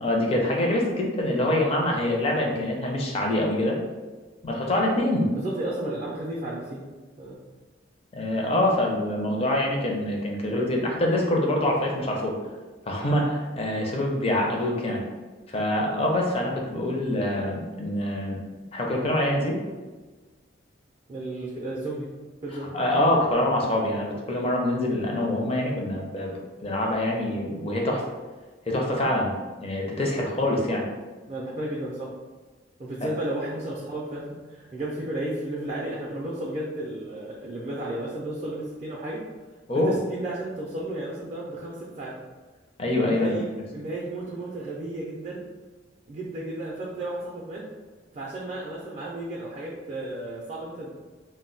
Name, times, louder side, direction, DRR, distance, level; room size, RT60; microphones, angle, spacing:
voice 1, 0.0-3.8 4.4-5.3 8.1-12.4 12.9-15.0 15.5-18.4 18.7-19.6 22.7-26.3 26.6-28.0 28.7-29.3 29.6-30.9 33.0-33.1 39.7-40.0 42.8-43.3, left 1 dB, 30° left, -1 dB, 0.5 m, -25 dB
voice 2, 5.3-6.8 7.2-7.4 21.1-22.1 22.4-22.7 31.3-32.1 32.8-39.2 39.7-42.2 43.1-43.4 43.7-45.4 46.1-47.6 48.1-50.9, right 1 dB, 35° right, -5 dB, 0.4 m, -33 dB
2.2 x 2.1 x 3.8 m, 1.3 s
head